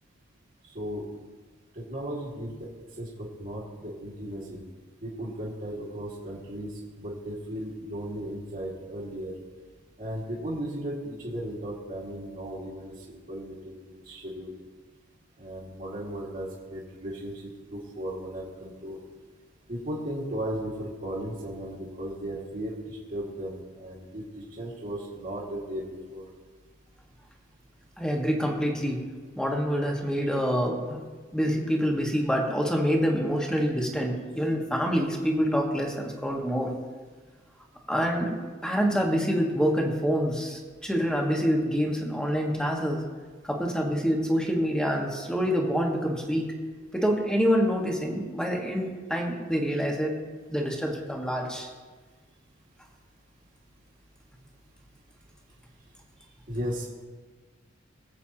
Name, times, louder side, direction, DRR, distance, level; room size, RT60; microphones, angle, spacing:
voice 1, 0.7-1.1 1.7-2.6 3.0-4.6 5.0-9.3 10.0-14.6 15.4-19.0 19.7-26.2 56.5-56.9, right 1 dB, 45° right, -7 dB, 2.1 m, -36 dB
voice 2, 28.0-29.1 29.4-31.0 31.3-36.7 37.9-43.0 43.4-46.5 46.9-50.1 50.5-51.7, equal, 5° left, 0 dB, 1.6 m, -26 dB
24.0 x 8.2 x 3.0 m, 1.4 s
head